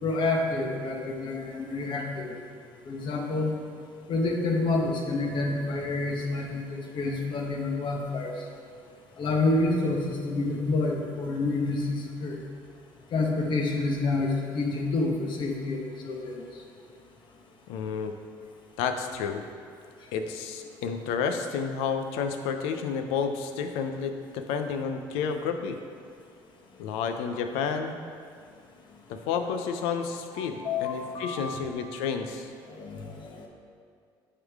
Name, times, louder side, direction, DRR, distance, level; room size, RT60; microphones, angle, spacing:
voice 1, 0.0-2.3 2.9-3.5 4.1-8.3 9.2-12.4 13.1-16.3 30.4-31.6 32.8-33.4, left 2 dB, 55° left, 1 dB, 1.1 m, -28 dB
voice 2, 17.7-18.2 18.8-19.4 20.1-25.8 26.8-28.0 29.1-32.5, left 6 dB, 80° left, 7 dB, 0.5 m, -30 dB
9.5 x 3.7 x 3.6 m, 2.2 s
supercardioid pair, 70°, 10 cm